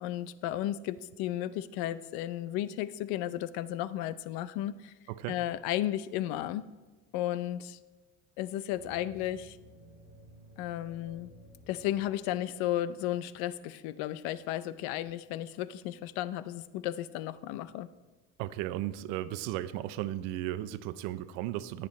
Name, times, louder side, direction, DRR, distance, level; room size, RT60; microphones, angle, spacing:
voice 1, 0.0-4.9 5.3-6.6 7.1-7.8 8.4-9.6 10.6-11.3 11.7-17.9, left 13 dB, 80° left, 15 dB, 0.6 m, -34 dB
sound 1, 8.7-13.5, right 1 dB, 20° right, 3.7 m, -55 dB
voice 2, 18.4-21.9, right 14 dB, 85° right, 15 dB, 0.6 m, -35 dB
18.5 x 7.4 x 3.1 m, 1.2 s
cardioid pair, 105°, 37 cm